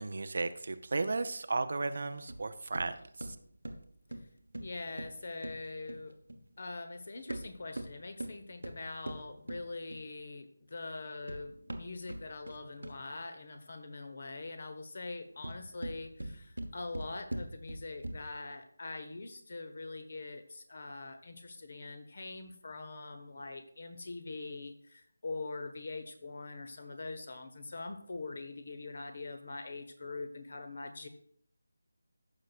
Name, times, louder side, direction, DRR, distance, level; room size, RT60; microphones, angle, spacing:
voice 1, 0.0-3.4, right 3 dB, 50° right, 11 dB, 0.6 m, -35 dB
sound 1, 2.3-6.5 7.2-10.2 11.0-13.2 15.2-18.5, right 1 dB, 75° right, 1.1 m, -43 dB
voice 2, 4.6-6.1 6.6-31.1, left 3 dB, 45° left, 8 dB, 1.0 m, -43 dB
14.5 x 6.4 x 2.4 m, 0.64 s
figure-of-eight pair, 160°, 0 cm